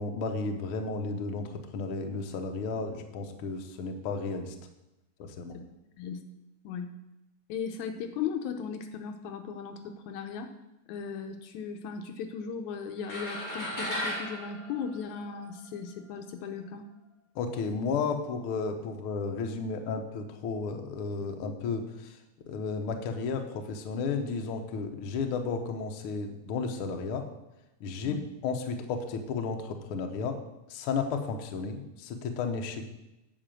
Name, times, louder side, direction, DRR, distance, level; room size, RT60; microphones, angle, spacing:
voice 1, 0.0-4.5 5.2-5.6 17.3-22.2 22.5-27.3 27.8-30.4 30.7-32.8, left 4 dB, 65° left, 4 dB, 1.4 m, -33 dB
voice 2, 7.5-10.5 10.9-16.8 28.0-28.3, left 6 dB, 80° left, 6 dB, 2.1 m, -37 dB
sound 1, 13.0-15.6, equal, 15° left, 2.5 m, -36 dB
10.0 x 4.9 x 7.6 m, 0.94 s
omnidirectional pair, 3.5 m